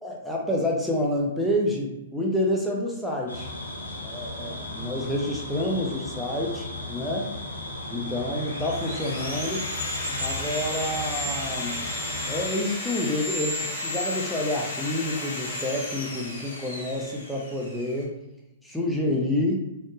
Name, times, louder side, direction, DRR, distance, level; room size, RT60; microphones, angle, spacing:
voice 1, 0.0-3.5 4.0-7.3 7.9-9.7 10.2-11.8 12.2-18.1 18.6-19.6, left 1 dB, ahead, -3 dB, 0.6 m, -28 dB
sound 1, 3.3-12.5, left 2 dB, 85° left, 0.6 m, -35 dB
Sawing, 8.2-18.0, left 1 dB, 60° left, 1.3 m, -33 dB
3.5 x 2.1 x 3.0 m, 0.94 s
figure-of-eight pair, 110°, 0 cm